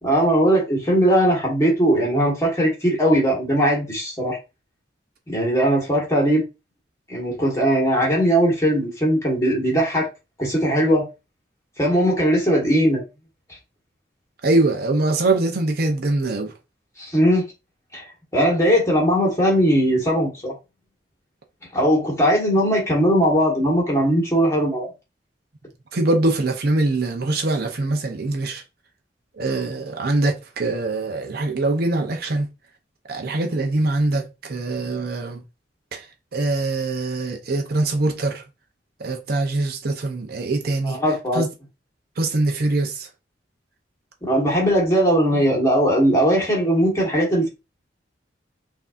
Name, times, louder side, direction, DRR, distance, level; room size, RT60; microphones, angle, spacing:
voice 1, 0.0-4.4 5.3-6.4 7.1-10.1 10.4-11.1 11.8-13.0 17.0-17.4 17.9-18.0 18.3-20.5 21.7-24.9 40.8-41.4 44.2-47.5, equal, 20° left, 1.7 m, -19 dB
voice 2, 14.4-16.5 25.9-28.6 29.4-32.5 33.1-35.4 35.9-36.0 36.3-38.4 39.0-41.0 41.3-41.5 42.2-43.1, right 2 dB, 60° right, 0.6 m, -23 dB
5.6 x 2.7 x 2.5 m
head